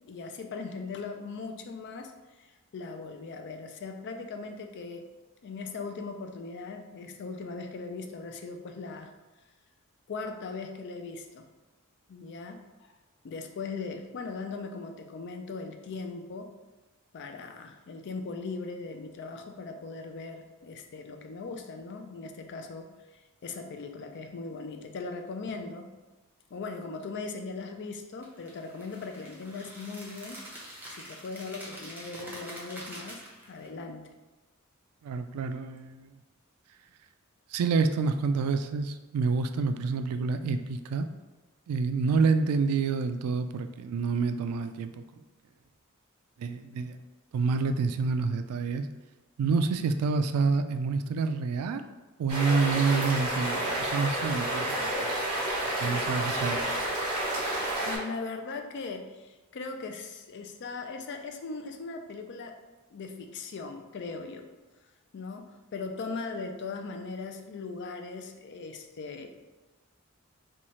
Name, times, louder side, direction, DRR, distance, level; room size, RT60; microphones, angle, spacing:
voice 1, 0.0-2.1 2.7-5.1 5.4-9.1 10.1-11.5 12.1-12.9 13.2-16.5 17.1-25.9 26.5-30.4 30.9-34.1 57.8-62.6 62.9-64.5 65.1-69.3, left 4 dB, 55° left, 5 dB, 0.4 m, -39 dB
sound 1, 28.2-33.7, equal, 10° right, 0.6 m, -45 dB
voice 2, 35.0-36.1 37.5-41.1 41.7-45.0 46.4-47.0 47.3-48.9 49.4-51.8 52.2-55.1 55.8-56.8, right 4 dB, 90° right, 11 dB, 0.3 m, -28 dB
sound 2, 52.3-58.0, right 1 dB, 25° right, 1.3 m, -30 dB
4.2 x 2.3 x 3.0 m, 1.2 s
head